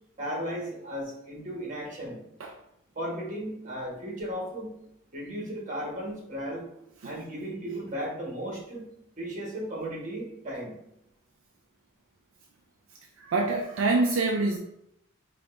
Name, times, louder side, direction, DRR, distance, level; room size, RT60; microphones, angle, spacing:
voice 1, 0.2-2.2 2.9-4.7 5.1-6.6 7.0-8.8 9.2-10.8, equal, 35° right, -3 dB, 1.2 m, -35 dB
voice 2, 13.2-14.6, right 3 dB, 70° right, 1 dB, 0.4 m, -26 dB
5.1 x 2.7 x 2.5 m, 0.78 s
head